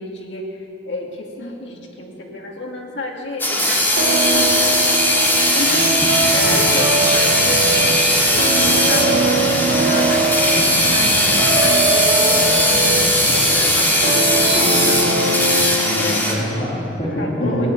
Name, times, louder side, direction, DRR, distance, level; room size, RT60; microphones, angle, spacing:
voice 1, 0.0-9.2 9.5-15.0 15.9-16.3 17.2-17.7, left 1 dB, 70° left, 0 dB, 2.5 m, -31 dB
sound 1, 3.4-16.3, left 1 dB, 10° left, 2.2 m, -18 dB
sound 2, 4.0-16.4, right 3 dB, 85° right, 2.6 m, -22 dB
sound 3, 5.7-16.2, right 1 dB, 30° right, 1.6 m, -30 dB
voice 2, 15.6-17.7, equal, 40° left, -9 dB, 3.2 m, -25 dB
17.0 x 9.9 x 8.5 m, 3.0 s
head